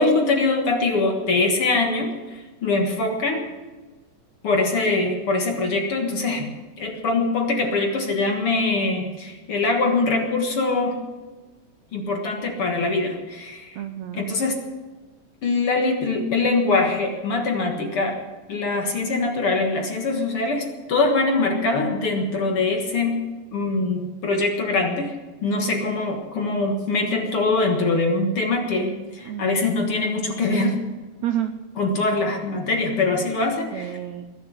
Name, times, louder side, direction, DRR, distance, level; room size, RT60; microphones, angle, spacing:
voice 1, 0.0-3.5 4.4-6.5 6.8-11.0 11.9-13.8 14.2-14.6 15.4-18.2 18.5-23.2 23.5-25.1 25.4-30.8 31.8-34.0, left 3 dB, 50° left, 2 dB, 1.9 m, -23 dB
voice 2, 13.7-14.3 29.3-29.9 31.2-31.5 33.7-34.3, right 11 dB, 85° right, 8 dB, 1.6 m, -30 dB
21.0 x 7.2 x 9.5 m, 1.3 s
omnidirectional pair, 4.1 m